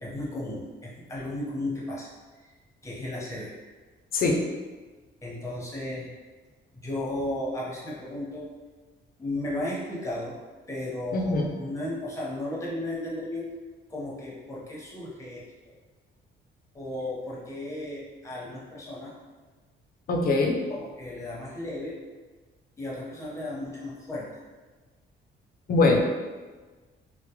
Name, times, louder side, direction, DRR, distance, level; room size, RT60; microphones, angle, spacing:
voice 1, 0.0-2.1 2.4-2.5 2.8-3.5 5.2-6.1 6.7-8.5 9.2-10.4 10.7-13.5 13.9-15.7 16.7-19.1 20.7-22.0 22.8-24.3, left 1 dB, 15° left, -6 dB, 0.8 m, -34 dB
voice 2, 11.1-11.5 20.1-20.6 25.7-26.0, left 3 dB, 50° left, 1 dB, 0.4 m, -22 dB
2.2 x 2.0 x 2.8 m, 1.3 s
cardioid pair, 90°, 20 cm